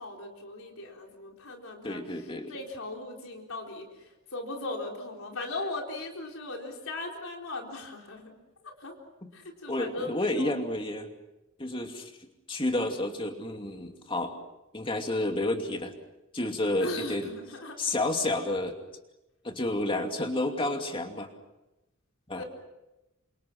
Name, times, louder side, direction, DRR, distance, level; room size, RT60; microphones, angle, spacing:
voice 1, 0.0-2.0 2.5-3.9 4.3-8.3 8.8-8.9 9.3-10.5 16.8-17.8 22.4-22.5, left 2 dB, 80° left, 1 dB, 4.2 m, -38 dB
voice 2, 1.8-2.5 9.2-9.3 9.7-11.1 11.6-12.1 12.5-14.4 14.7-15.9 16.3-17.3 17.8-18.8 19.4-21.3 22.3-22.4, left 1 dB, 25° left, 4 dB, 2.6 m, -30 dB
29.0 x 26.5 x 6.1 m, 0.97 s
head